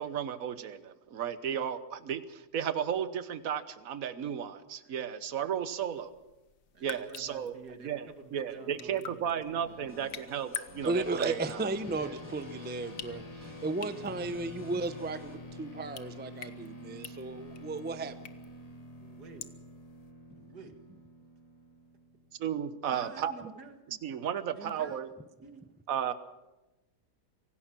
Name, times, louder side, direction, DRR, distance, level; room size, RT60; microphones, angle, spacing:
voice 1, 0.0-6.1 6.8-7.5 7.8-11.6 12.0-12.1 22.4-23.3 23.9-25.1 25.9-26.1, right 8 dB, 60° right, 12 dB, 1.5 m, -34 dB
sound 1, 5.8-20.1, left 7 dB, 60° left, 1.5 m, -49 dB
voice 2, 6.7-10.2 19.0-19.5 20.3-20.7 22.9-24.0 24.5-25.1 25.4-25.7, right 4 dB, 80° right, 6 dB, 2.4 m, -50 dB
sound 2, 9.6-15.4, left 3 dB, 45° left, 3.4 m, -53 dB
sound 3, 10.8-22.5, left 1 dB, 25° left, 1.6 m, -48 dB
voice 3, 10.8-18.2, right 2 dB, 10° right, 11 dB, 0.6 m, -35 dB
25.5 x 17.5 x 6.2 m, 1.0 s
omnidirectional pair, 1.7 m